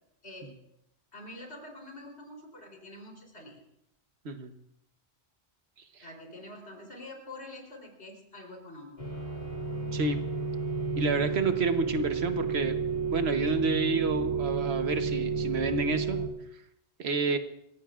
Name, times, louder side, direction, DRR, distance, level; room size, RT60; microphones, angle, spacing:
voice 1, 0.2-0.6 1.1-3.7 6.0-9.0, left 1 dB, 75° left, 0 dB, 3.8 m, -46 dB
sound 1, 9.0-16.3, right 5 dB, 40° left, 2.9 m, -31 dB
voice 2, 11.0-12.8 13.1-16.2 17.0-17.4, right 3 dB, 70° right, 8 dB, 1.3 m, -29 dB
27.0 x 15.5 x 2.5 m, 0.79 s
omnidirectional pair, 1.1 m